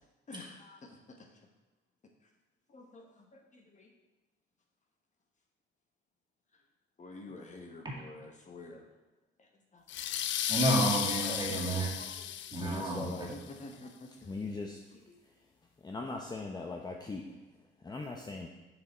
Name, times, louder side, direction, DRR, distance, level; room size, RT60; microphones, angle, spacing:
voice 1, 0.3-1.3 2.7-3.9 6.5-6.6 7.0-8.9 9.4-9.8 11.2-11.4 12.0-12.4 12.9-14.1 15.1-15.2, left 2 dB, 40° left, 2 dB, 1.1 m, -50 dB
sound 1, 9.9-13.3, left 10 dB, 70° left, 0.5 m, -34 dB
voice 2, 10.5-12.0 12.5-13.3, right 1 dB, 25° right, -3 dB, 2.1 m, -30 dB
voice 3, 12.6-13.3 14.2-14.8 15.2-15.5 15.8-18.5, left 3 dB, 20° left, 1 dB, 0.7 m, -40 dB
6.7 x 5.8 x 4.3 m, 1.1 s
cardioid pair, 90°, 20 cm